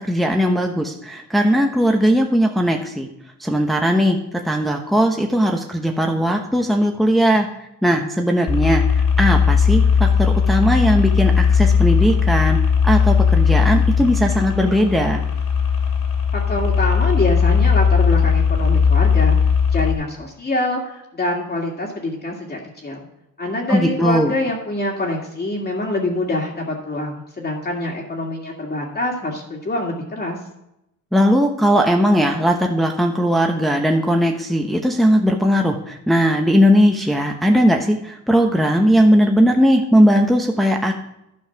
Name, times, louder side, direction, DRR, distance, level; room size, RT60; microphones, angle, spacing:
voice 1, 0.1-3.1 3.4-4.2 4.4-7.5 7.8-12.6 12.8-15.2 23.7-24.3 31.1-40.9, equal, ahead, 2 dB, 1.0 m, -18 dB
sound 1, 8.5-19.9, left 6 dB, 70° left, 2.7 m, -17 dB
voice 2, 16.3-19.4 19.7-23.0 23.4-30.4, left 1 dB, 35° left, -1 dB, 2.2 m, -25 dB
11.5 x 5.6 x 5.9 m, 0.86 s
cardioid pair, 90°, 30 cm